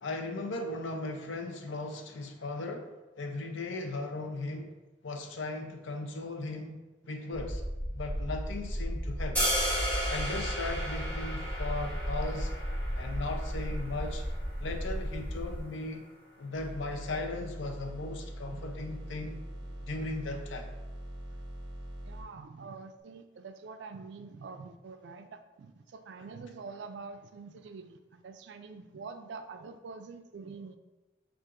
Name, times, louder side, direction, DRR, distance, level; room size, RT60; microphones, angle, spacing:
voice 1, 0.0-4.7 5.0-7.6 7.9-9.4 10.1-12.6 13.0-14.3 14.6-16.1 16.4-19.4 19.9-20.7, left 2 dB, 85° left, 0.6 m, -37 dB
sound 1, 7.3-15.6, equal, 40° left, 0.7 m, -35 dB
sound 2, 9.4-15.5, equal, 10° left, 1.4 m, -35 dB
sound 3, 16.5-22.2, right 1 dB, 25° right, 0.8 m, -42 dB
voice 2, 22.1-30.8, right 4 dB, 70° right, 0.4 m, -46 dB
7.3 x 2.5 x 2.5 m
head